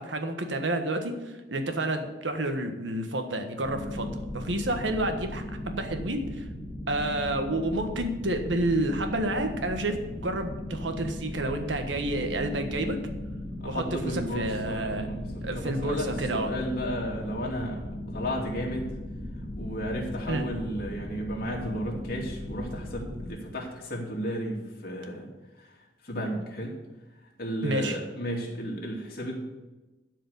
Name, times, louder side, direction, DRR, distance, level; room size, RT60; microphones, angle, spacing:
voice 1, 0.0-6.4 6.9-13.0 13.6-15.1 15.4-16.5 20.3-20.4 27.6-28.0, right 1 dB, 90° right, 6 dB, 1.4 m, -30 dB
sound 1, 3.6-23.3, left 1 dB, 20° right, 2.0 m, -37 dB
voice 2, 13.6-16.1 16.3-17.8 18.1-18.9 19.6-25.3 26.0-26.7 27.4-29.4, equal, 55° left, -1 dB, 2.7 m, -33 dB
12.0 x 5.0 x 8.2 m, 1.1 s
head